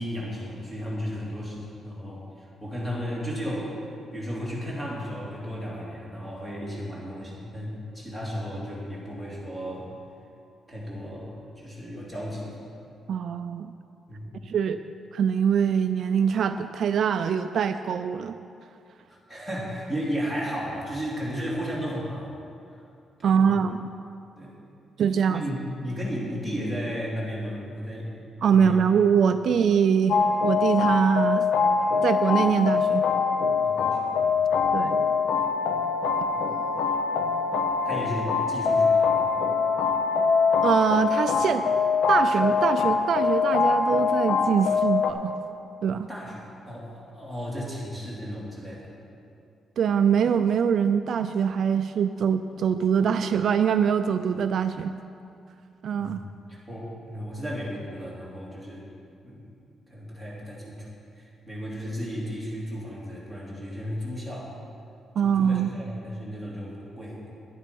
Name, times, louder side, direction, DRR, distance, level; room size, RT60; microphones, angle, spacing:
voice 1, 0.0-3.7 4.1-9.9 10.7-12.6 14.1-14.3 19.1-22.3 22.7-22.8 23.2-23.6 24.4-24.5 25.3-28.1 28.5-28.8 33.6-34.7 36.3-36.5 37.8-39.2 46.1-48.9 56.0-56.2 56.5-58.9 59.2-59.6 59.9-60.9 61.2-64.5 65.2-67.3, equal, 10° left, -5 dB, 2.9 m, -34 dB
voice 2, 13.1-13.7 14.4-14.8 15.1-18.3 23.2-23.9 25.0-25.4 28.4-31.5 32.0-33.0 34.7-35.0 40.6-41.6 42.1-45.3 45.8-46.1 49.8-54.9 55.8-56.2 65.2-65.7, right 7 dB, 60° right, 9 dB, 0.4 m, -23 dB
sound 1, 30.1-45.1, left 5 dB, 70° left, 0.7 m, -23 dB
10.5 x 10.5 x 5.4 m, 2.6 s
cardioid pair, 145°, 0 cm